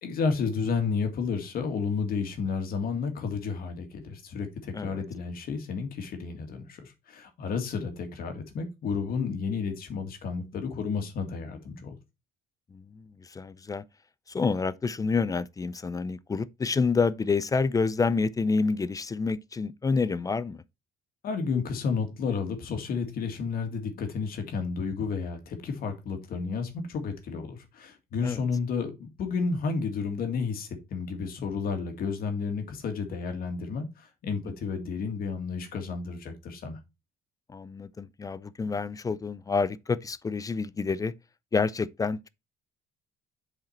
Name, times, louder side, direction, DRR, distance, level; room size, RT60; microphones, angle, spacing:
voice 1, 0.0-12.0 21.2-36.8, left 5 dB, 60° left, 2.0 m, -31 dB
voice 2, 4.7-5.0 12.7-13.8 14.3-20.6 28.2-28.4 37.5-41.1 41.5-42.3, left 4 dB, 20° left, 0.4 m, -28 dB
7.4 x 5.0 x 4.2 m
cardioid pair, 110°, 17 cm